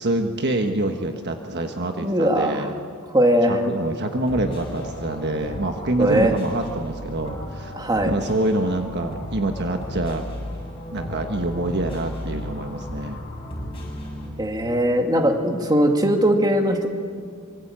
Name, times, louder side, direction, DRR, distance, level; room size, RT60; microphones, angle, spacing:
voice 1, 0.0-2.7 3.5-7.7 8.0-10.2 10.9-13.2, right 2 dB, 50° right, 5 dB, 1.4 m, -26 dB
voice 2, 2.0-2.7 3.1-3.6 6.0-6.3 7.7-8.1 14.4-16.9, equal, 20° right, 4 dB, 2.3 m, -20 dB
sound 1, 4.1-14.3, left 1 dB, 25° left, 7.2 m, -34 dB
25.0 x 24.5 x 8.8 m, 2.2 s
head